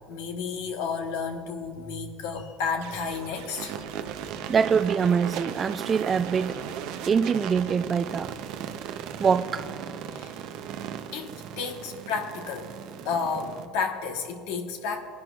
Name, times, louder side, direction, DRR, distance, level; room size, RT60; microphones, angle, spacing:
voice 1, 0.1-3.8 10.1-10.4 11.1-12.7 13.0-15.0, left 5 dB, 85° left, 1.2 m, -32 dB
sound 1, 2.8-7.2, right 7 dB, 90° right, 0.9 m, -44 dB
sound 2, 3.5-13.7, right 8 dB, 65° right, 0.7 m, -37 dB
voice 2, 4.5-6.6 7.1-8.3 9.2-9.7, right 6 dB, 30° right, 0.3 m, -24 dB
20.5 x 10.5 x 2.4 m
supercardioid pair, 115°, 0 cm